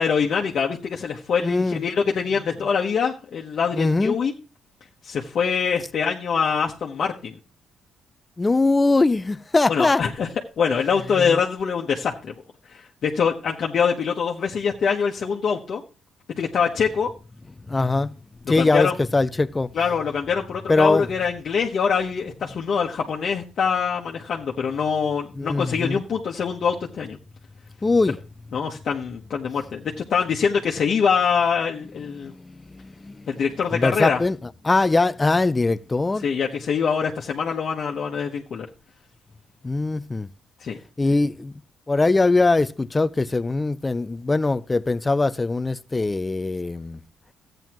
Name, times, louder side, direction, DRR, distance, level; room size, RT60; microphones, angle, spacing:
voice 1, 0.0-4.3 5.0-7.4 9.7-10.3 10.6-12.3 12.7-15.8 16.4-17.1 18.6-18.9 19.7-27.2 28.5-32.3 33.3-34.2 36.2-38.7 40.6-40.8, left 6 dB, 55° left, 1.3 m, -24 dB
voice 2, 1.4-1.8 3.7-4.2 8.4-10.0 11.2-11.4 17.7-18.1 18.5-19.7 20.7-21.1 25.4-26.0 27.8-28.2 32.1-33.4 33.7-36.3 39.6-40.3 41.0-41.5 41.9-47.0, left 3 dB, 20° left, 0.5 m, -22 dB
14.0 x 9.1 x 3.0 m
cardioid pair, 90°, 0 cm